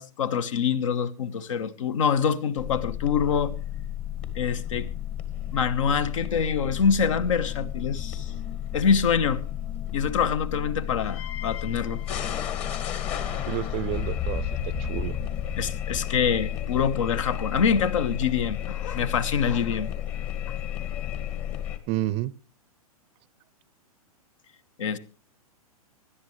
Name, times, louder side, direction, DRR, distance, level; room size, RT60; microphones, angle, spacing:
voice 1, 0.0-3.5 4.3-4.9 5.5-8.3 8.7-9.4 9.9-12.0 15.6-19.9 24.8-25.0, left 6 dB, 55° left, 1.2 m, -25 dB
sound 1, 2.6-21.8, left 10 dB, 30° left, 1.8 m, -32 dB
voice 2, 13.5-14.4 14.8-15.2 21.9-22.3, right 15 dB, 30° right, 0.7 m, -29 dB
25.0 x 11.0 x 3.2 m
figure-of-eight pair, 105°, 19 cm